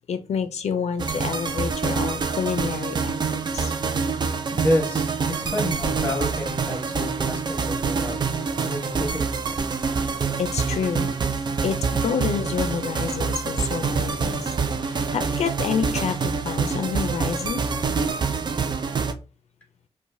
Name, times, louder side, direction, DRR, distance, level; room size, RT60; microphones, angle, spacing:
voice 1, 0.1-3.7 10.4-11.1 11.6-14.5 14.8-17.6, left 6 dB, 90° left, 0.4 m, -28 dB
sound 1, 1.0-19.1, right 5 dB, 45° right, 0.4 m, -26 dB
voice 2, 4.5-9.6, left 1 dB, 15° left, 1.2 m, -29 dB
4.7 x 2.2 x 2.6 m
wide cardioid pair, 155°, 11 cm